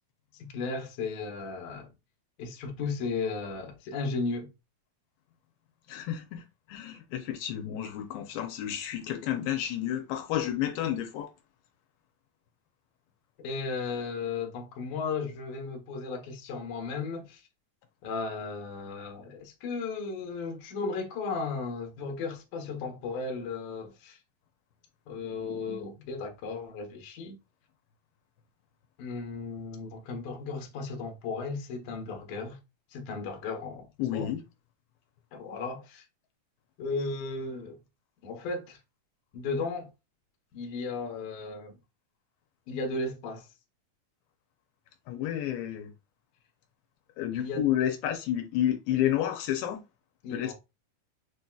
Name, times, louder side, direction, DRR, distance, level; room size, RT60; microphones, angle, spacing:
voice 1, 0.3-1.9 2.4-4.5 13.4-17.4 18.0-24.2 25.1-27.3 29.0-32.6 32.9-34.3 35.3-36.0 36.8-37.8 38.2-38.8 39.3-39.9 40.5-41.8 42.7-43.5 47.3-47.7 50.2-50.5, left 4 dB, 65° left, 2.1 m, -35 dB
voice 2, 5.9-11.3 34.0-34.4 45.1-45.9 47.2-49.8 50.3-50.5, left 11 dB, 85° left, 2.4 m, -30 dB
6.3 x 2.7 x 2.3 m
omnidirectional pair, 4.2 m